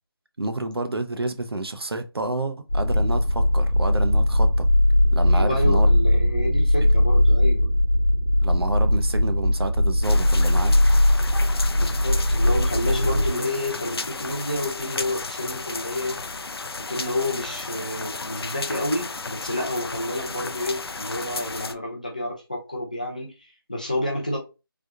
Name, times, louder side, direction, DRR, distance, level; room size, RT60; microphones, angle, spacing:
voice 1, 0.4-4.7 5.1-5.9 8.4-10.8, right 2 dB, 85° right, 0.7 m, -29 dB
sound 1, 2.7-13.3, left 1 dB, 65° left, 1.0 m, -19 dB
voice 2, 5.3-7.7 11.7-16.2 16.9-23.3 23.7-24.4, left 1 dB, 20° left, 0.6 m, -29 dB
sound 2, 10.0-21.7, left 3 dB, 85° left, 0.4 m, -34 dB
3.4 x 2.6 x 2.4 m
figure-of-eight pair, 175°, 13 cm